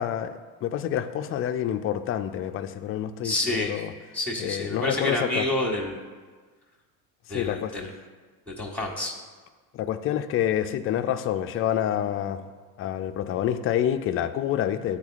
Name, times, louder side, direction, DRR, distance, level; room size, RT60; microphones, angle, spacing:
voice 1, 0.0-3.9 4.4-5.4 7.3-7.7 9.7-12.5 12.8-15.0, left 10 dB, 30° left, 9 dB, 0.4 m, -28 dB
voice 2, 3.2-3.7 4.1-6.0 7.3-7.9 8.5-9.1, left 1 dB, 5° left, 0 dB, 1.4 m, -28 dB
10.5 x 4.1 x 2.4 m, 1.4 s
hypercardioid pair, 80°, 46 cm